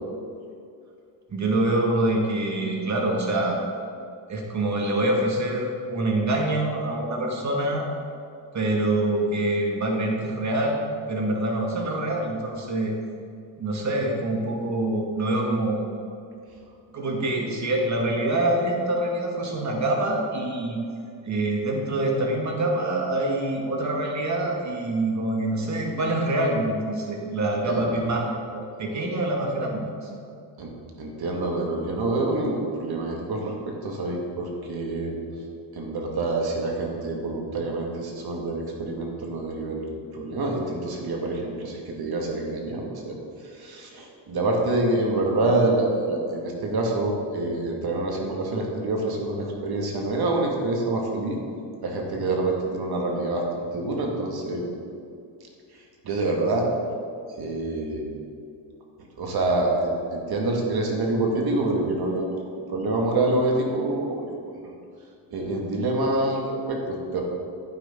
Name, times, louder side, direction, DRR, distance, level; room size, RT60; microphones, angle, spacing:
voice 1, 1.3-3.6 4.3-7.9 8.5-10.8 11.1-12.9 13.6-15.8 16.9-20.8 21.2-30.1, right 1 dB, 35° right, 0 dB, 2.1 m, -25 dB
voice 2, 27.7-28.0 30.6-35.2 35.7-51.4 51.8-54.6 55.7-56.7 57.4-58.1 59.2-62.4 62.7-64.7 65.3-67.2, right 2 dB, 50° right, 0 dB, 2.2 m, -27 dB
11.5 x 9.2 x 3.9 m, 2.4 s
cardioid pair, 100°, 47 cm